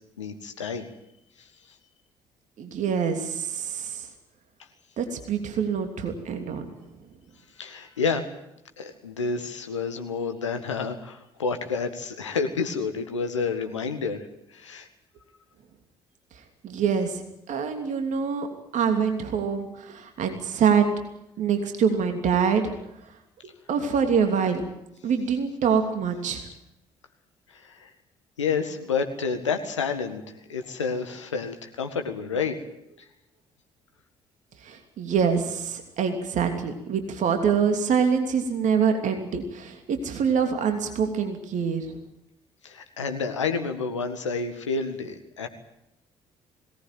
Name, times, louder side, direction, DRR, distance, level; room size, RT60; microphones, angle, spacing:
voice 1, 0.2-0.8 7.6-8.2 8.8-14.2 14.5-14.9 27.6-27.9 28.4-30.2 30.5-32.6 42.6-45.5, left 5 dB, 85° left, 7 dB, 1.7 m, -29 dB
voice 2, 2.6-4.1 5.0-6.7 16.6-18.5 18.7-20.8 21.4-22.6 23.7-24.6 25.0-26.5 34.6-41.9, right 6 dB, 55° right, 5 dB, 3.0 m, -25 dB
21.5 x 18.5 x 9.1 m, 0.85 s
figure-of-eight pair, 50°, 15 cm